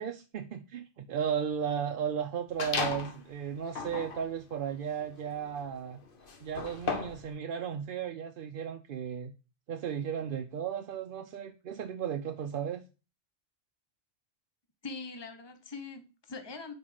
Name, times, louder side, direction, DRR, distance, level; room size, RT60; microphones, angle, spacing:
voice 1, 0.0-6.0 6.4-9.3 9.7-12.8, right 8 dB, 55° right, 0.7 m, -35 dB
sound 1, 2.6-3.2 3.7-7.3, left 4 dB, 50° left, 1.1 m, -36 dB
voice 2, 14.8-16.7, left 4 dB, 25° left, 0.9 m, -42 dB
5.8 x 4.7 x 4.7 m
omnidirectional pair, 1.3 m